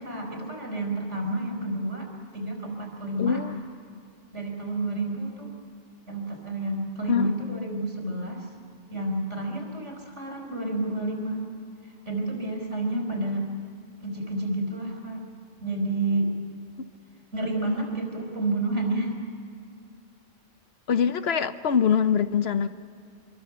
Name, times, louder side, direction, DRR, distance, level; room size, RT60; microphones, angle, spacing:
voice 1, 0.0-3.4 4.3-5.5 6.1-8.5 8.9-11.5 11.8-13.5 14.0-15.2 15.6-16.4 17.3-19.1, right 2 dB, 80° right, 1 dB, 4.6 m, -30 dB
voice 2, 3.2-3.5 7.1-7.5 20.9-22.7, left 7 dB, 65° left, 12 dB, 1.0 m, -24 dB
24.5 x 22.5 x 6.9 m, 2.4 s
omnidirectional pair, 1.2 m